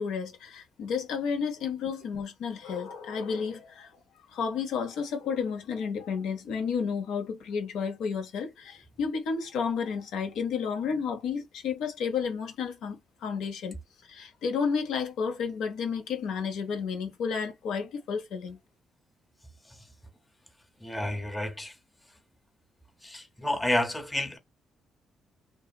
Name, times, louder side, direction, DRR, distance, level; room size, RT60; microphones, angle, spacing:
voice 1, 0.0-3.9 4.3-13.8 14.1-18.6, left 6 dB, 85° left, 0.7 m, -31 dB
voice 2, 20.8-21.7 23.0-24.4, left 1 dB, 10° left, 0.7 m, -30 dB
2.8 x 2.3 x 2.3 m
cardioid pair, 90°, 0 cm